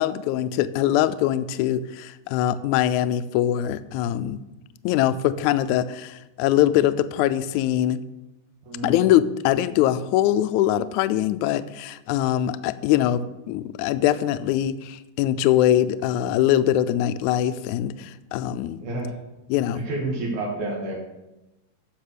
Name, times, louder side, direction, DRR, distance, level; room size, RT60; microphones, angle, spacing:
voice 1, 0.0-4.4 4.8-8.0 8.8-13.2 13.5-18.8 19.5-19.9, left 12 dB, 80° left, 13 dB, 1.8 m, -22 dB
voice 2, 8.6-9.1 18.8-19.1 19.7-21.0, right 2 dB, 70° right, -1 dB, 3.3 m, -29 dB
13.5 x 5.5 x 6.7 m, 0.99 s
omnidirectional pair, 3.7 m